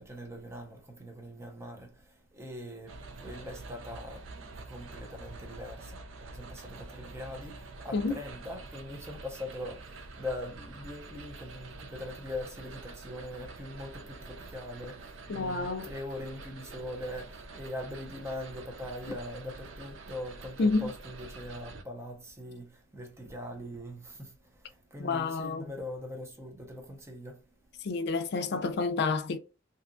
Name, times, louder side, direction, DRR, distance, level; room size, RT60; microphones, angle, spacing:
voice 1, 0.0-27.9, left 1 dB, 15° right, 0.6 m, -42 dB
sound 1, 2.9-21.8, right 3 dB, 75° right, 0.5 m, -47 dB
voice 2, 15.3-15.9 20.6-20.9 25.0-25.6 27.8-29.4, left 3 dB, 55° left, 0.4 m, -29 dB
2.8 x 2.3 x 2.5 m
head